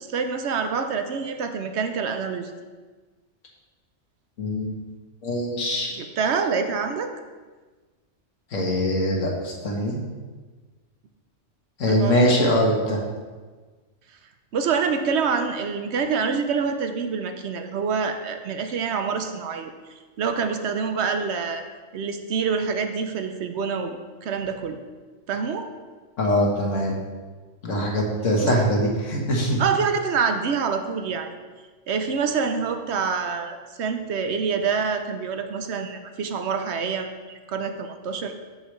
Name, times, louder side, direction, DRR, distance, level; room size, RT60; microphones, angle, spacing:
voice 1, 0.1-2.5 6.0-7.1 11.9-12.4 14.5-19.7 20.2-21.6 21.9-24.8 25.3-25.7 28.4-28.5 29.6-31.3 31.9-38.3, right 5 dB, 65° right, 7 dB, 0.9 m, -26 dB
voice 2, 4.4-4.7 5.2-5.9 8.5-10.0 11.8-13.0 26.2-27.0 27.6-29.6, equal, 80° left, -1 dB, 1.7 m, -22 dB
13.0 x 5.0 x 3.2 m, 1.4 s
omnidirectional pair, 1.3 m